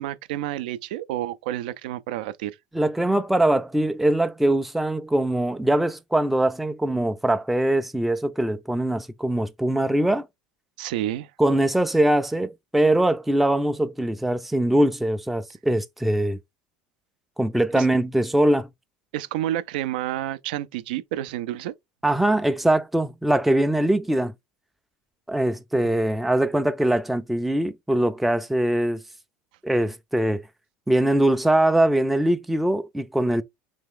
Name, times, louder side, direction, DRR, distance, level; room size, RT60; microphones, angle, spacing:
voice 1, 0.0-2.6 10.8-11.3 17.8-17.9 19.1-21.7, right 13 dB, 85° right, 0.4 m, -29 dB
voice 2, 2.7-10.3 11.4-16.4 17.4-18.7 22.0-24.3 25.3-29.0 29.6-30.5 30.9-33.4, right 1 dB, 5° right, 0.3 m, -22 dB
3.4 x 3.0 x 3.6 m
supercardioid pair, 115°, 5 cm